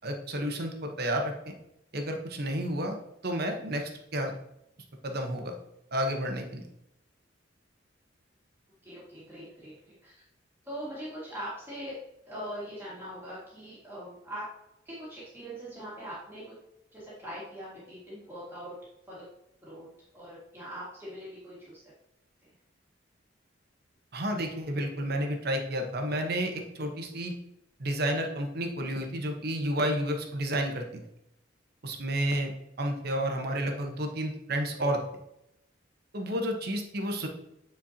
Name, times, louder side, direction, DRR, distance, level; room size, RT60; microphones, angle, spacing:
voice 1, 0.0-1.5 1.9-3.0 3.2-4.3 5.0-5.5 5.9-6.6 24.1-27.3 27.8-31.0 31.8-32.5 32.8-35.0 36.1-37.3, right 1 dB, 55° right, 3 dB, 1.0 m, -31 dB
voice 2, 8.8-10.2 10.6-12.0 12.3-14.5 14.9-16.4 16.9-18.8 19.1-19.3 19.6-19.9 20.1-21.8 22.4-22.6, equal, 10° right, -8 dB, 1.9 m, -41 dB
8.7 x 4.5 x 2.8 m, 0.82 s
head